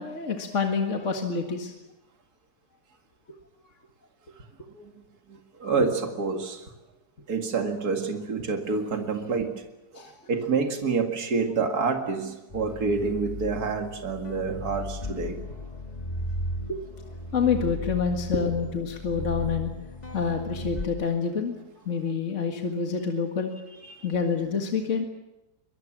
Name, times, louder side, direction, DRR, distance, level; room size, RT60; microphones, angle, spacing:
voice 1, 0.0-1.7 9.9-10.1 16.7-16.8 17.3-19.7 20.1-21.6 21.9-23.5 24.0-25.0, left 5 dB, 45° left, 3 dB, 2.2 m, -27 dB
voice 2, 5.6-6.6 7.3-9.6 10.3-15.4 23.9-24.0, right 4 dB, 65° right, 4 dB, 2.6 m, -27 dB
sound 1, 12.5-20.9, left 1 dB, 25° left, 1.5 m, -36 dB
24.0 x 21.5 x 7.5 m, 0.98 s
omnidirectional pair, 1.8 m